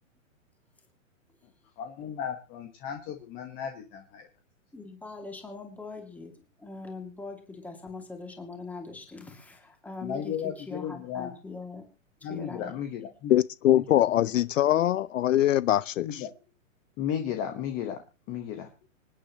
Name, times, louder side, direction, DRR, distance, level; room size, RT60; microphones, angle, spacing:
voice 1, 1.8-4.3 10.0-11.3 12.2-13.3 13.7-14.3 16.0-16.3 17.0-18.0 18.3-18.7, left 9 dB, 20° left, 1.2 m, -35 dB
voice 2, 4.7-11.9 12.2-12.9, left 3 dB, 5° left, 2.3 m, -42 dB
voice 3, 13.3-16.3, left 13 dB, 65° left, 0.6 m, -23 dB
26.0 x 9.9 x 3.0 m
hypercardioid pair, 155°, 41 cm